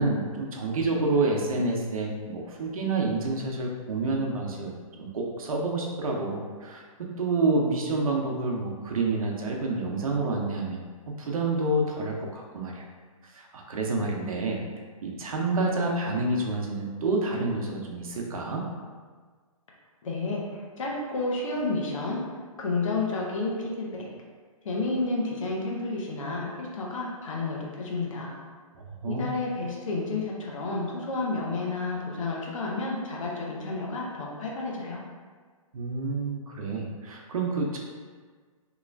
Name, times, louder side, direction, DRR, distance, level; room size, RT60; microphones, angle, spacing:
voice 1, 0.0-10.8 11.2-12.8 13.3-14.6 15.0-18.6 28.7-29.4 35.7-37.8, right 3 dB, 70° right, 0 dB, 0.7 m, -28 dB
voice 2, 20.0-22.2 22.6-24.1 24.6-28.3 29.1-35.0, left 3 dB, 60° left, -2 dB, 0.9 m, -31 dB
3.1 x 2.9 x 2.5 m, 1.5 s
hypercardioid pair, 155°, 18 cm